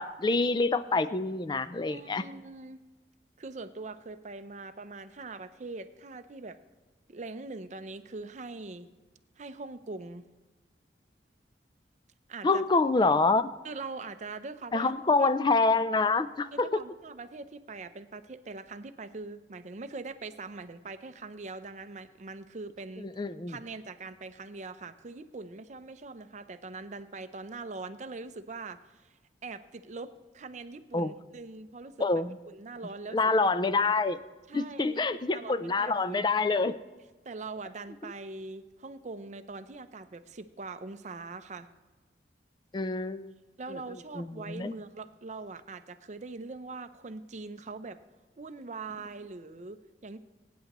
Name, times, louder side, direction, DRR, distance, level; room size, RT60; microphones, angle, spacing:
voice 1, 0.0-2.2 12.4-13.5 14.7-16.7 23.2-23.6 30.9-31.1 32.0-32.4 33.1-34.2 34.5-36.8 42.7-43.3 44.2-44.7, left 3 dB, 25° left, 13 dB, 0.4 m, -26 dB
voice 2, 1.9-2.8 3.4-6.6 7.1-8.9 9.4-10.2 12.3-12.6 13.6-14.9 15.2-15.3 16.5-23.1 23.5-29.1 29.4-31.9 32.5-33.3 34.5-36.3 37.2-41.7 43.6-48.0 48.4-50.2, right 3 dB, 40° right, 11 dB, 0.6 m, -42 dB
22.5 x 9.4 x 3.0 m, 1.2 s
head